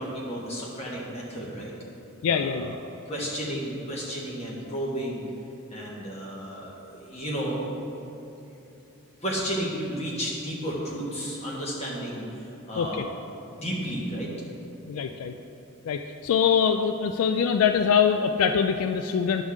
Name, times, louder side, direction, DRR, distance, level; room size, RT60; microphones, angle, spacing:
voice 1, 0.0-1.7 2.3-2.7 3.1-5.2 5.7-8.0 9.2-13.0 13.5-14.3, equal, 30° left, -4 dB, 1.4 m, -32 dB
voice 2, 2.2-2.7 12.8-13.1 14.9-15.3 15.9-19.4, left 7 dB, 75° left, 7 dB, 0.3 m, -23 dB
10.0 x 3.6 x 6.4 m, 2.8 s
head